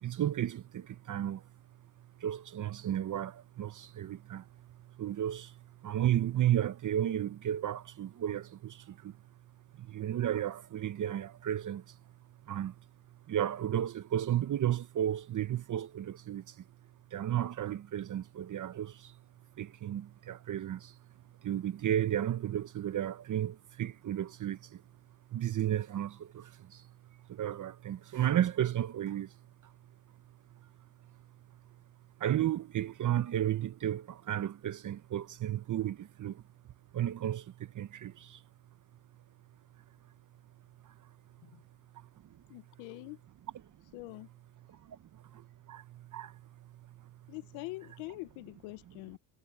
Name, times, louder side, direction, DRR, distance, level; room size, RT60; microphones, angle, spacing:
voice 1, 0.0-1.5 2.0-9.2 9.7-12.0 12.4-12.8 13.3-16.6 17.1-19.2 19.5-21.0 21.4-24.8 25.3-26.9 27.3-29.4 29.6-29.7 30.5-30.7 31.0-31.1 32.2-36.4 36.9-38.4 40.8-41.1 41.9-42.1 44.7-47.3, right 11 dB, 40° right, 0.9 m, -34 dB
voice 2, 42.5-43.2 43.9-44.3 47.3-49.2, left 22 dB, 85° left, 1.2 m, -44 dB
supercardioid pair, 90°, 46 cm